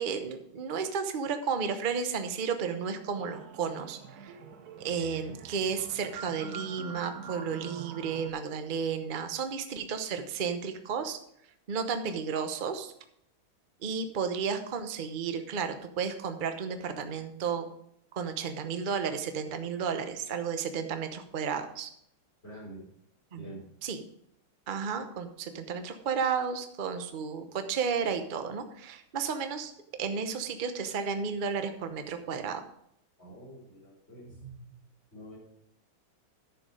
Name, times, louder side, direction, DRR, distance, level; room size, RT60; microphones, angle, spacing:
voice 1, 0.0-4.4 4.8-11.2 11.7-12.9 13.8-17.7 18.1-21.9 23.3-23.5 23.8-24.0 24.7-29.7 30.0-32.6, right 6 dB, 85° right, 7 dB, 0.4 m, -33 dB
sound 1, 3.2-8.3, right 5 dB, 60° right, 1.1 m, -45 dB
voice 2, 22.4-22.8 23.4-23.6 33.2-34.7 35.1-35.4, right 1 dB, 30° left, -4 dB, 5.0 m, -46 dB
10.5 x 7.1 x 4.9 m, 0.73 s
omnidirectional pair, 2.3 m